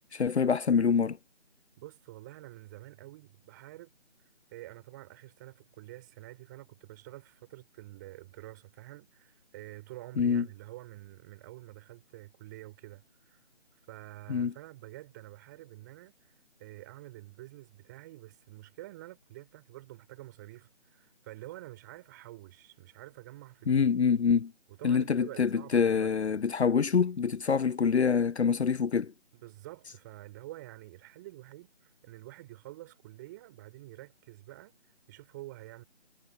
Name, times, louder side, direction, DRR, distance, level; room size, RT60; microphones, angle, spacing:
voice 1, 0.1-1.2 10.2-10.5 14.3-14.5 23.7-24.5 24.8-29.1, left 6 dB, 70° left, 0.6 m, -26 dB
voice 2, 1.8-3.9 4.5-13.4 13.9-16.3 16.6-23.9 24.8-26.4 29.3-34.7 35.1-35.8, right 17 dB, 15° right, 6.2 m, -48 dB
figure-of-eight pair, 160°, 34 cm